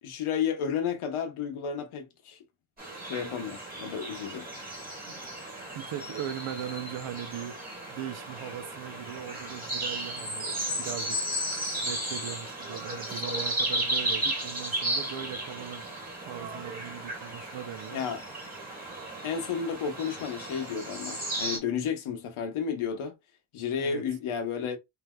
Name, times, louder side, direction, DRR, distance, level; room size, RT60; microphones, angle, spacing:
voice 1, 0.0-2.4 3.0-4.5 17.9-18.2 19.2-23.1 23.5-24.8, left 7 dB, 80° left, 1.0 m, -32 dB
sound 1, 2.8-21.6, right 1 dB, 20° right, 1.5 m, -34 dB
voice 2, 5.7-7.6 7.9-15.9 16.2-18.1 23.8-24.0, right 10 dB, 70° right, 0.7 m, -39 dB
3.3 x 2.7 x 2.2 m
wide cardioid pair, 145°, 49 cm